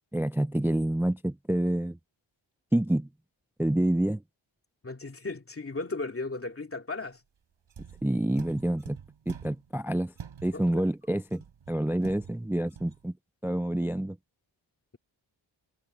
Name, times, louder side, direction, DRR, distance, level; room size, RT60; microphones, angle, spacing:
voice 1, 0.1-2.0 2.7-3.1 3.6-4.2 8.0-9.0 9.3-10.1 10.4-11.4 11.7-13.1 13.4-14.2, right 1 dB, 5° right, 0.4 m, -27 dB
voice 2, 4.8-7.2 10.5-10.9, left 3 dB, 30° left, 2.7 m, -36 dB
sound 1, 7.7-9.7 10.2-10.8 11.3-13.1, right 7 dB, 80° right, 4.0 m, -47 dB
wide cardioid pair, 125°, 47 cm